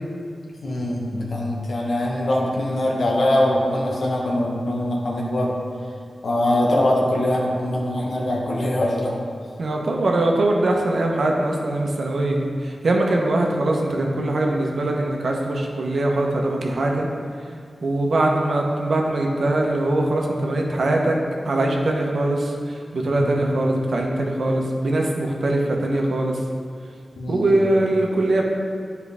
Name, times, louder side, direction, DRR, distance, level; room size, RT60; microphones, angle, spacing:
voice 1, 0.6-5.6 6.2-9.1 23.1-23.4 27.2-27.5, left 1 dB, 70° left, -3 dB, 1.1 m, -22 dB
voice 2, 9.6-17.1 17.8-21.2 21.4-26.4 27.3-28.4, right 2 dB, 75° right, 0 dB, 0.9 m, -22 dB
8.5 x 4.6 x 3.5 m, 2.1 s
wide cardioid pair, 70°, 0 cm